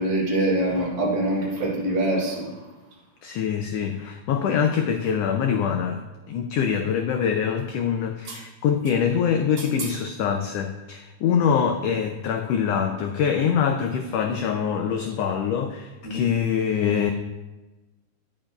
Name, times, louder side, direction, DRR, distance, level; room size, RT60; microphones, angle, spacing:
voice 1, 0.0-2.6 8.3-8.4 9.6-9.9 16.0-16.2, right 1 dB, 70° right, -5 dB, 5.2 m, -25 dB
voice 2, 3.2-17.1, left 7 dB, 85° left, 5 dB, 1.4 m, -24 dB
14.5 x 10.0 x 2.3 m, 1.1 s
omnidirectional pair, 3.4 m